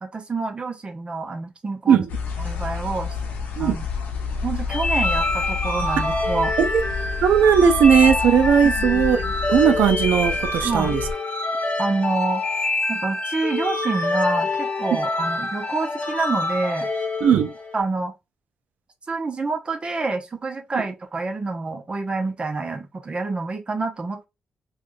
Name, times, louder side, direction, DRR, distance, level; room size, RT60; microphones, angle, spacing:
voice 1, 0.0-2.0 2.4-3.2 3.6-3.9 4.4-6.6 8.6-9.3 10.6-11.0 11.8-12.4 12.9-16.9 17.7-18.1 19.1-24.3, right 3 dB, 40° right, 0.7 m, -27 dB
sound 1, 2.1-11.1, left 5 dB, 85° left, 0.8 m, -29 dB
sound 2, 4.7-17.8, left 2 dB, 50° left, 0.9 m, -26 dB
voice 2, 7.2-9.2 9.5-11.0 14.9-15.0 17.2-17.5, right 7 dB, 85° right, 0.5 m, -17 dB
3.5 x 2.3 x 2.6 m
cardioid pair, 65°, 3 cm